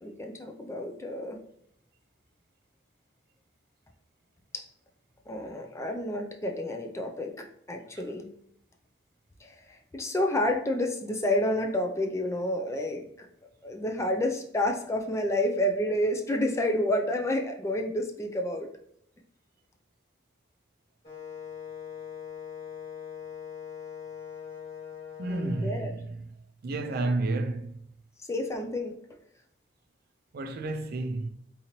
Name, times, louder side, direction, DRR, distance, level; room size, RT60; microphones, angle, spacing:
voice 1, 0.0-1.4 5.3-8.3 9.4-9.5 9.9-13.3 13.6-18.7 25.3-25.9 26.8-27.1 28.3-29.0, left 1 dB, 15° left, 0.4 m, -29 dB
Wind instrument woodwind instrument, 21.0-25.7, left 8 dB, 35° left, 1.5 m, -41 dB
voice 2, 25.2-26.3 26.6-27.7 30.3-31.3, right 2 dB, 55° right, 0.4 m, -31 dB
3.8 x 3.0 x 2.8 m
head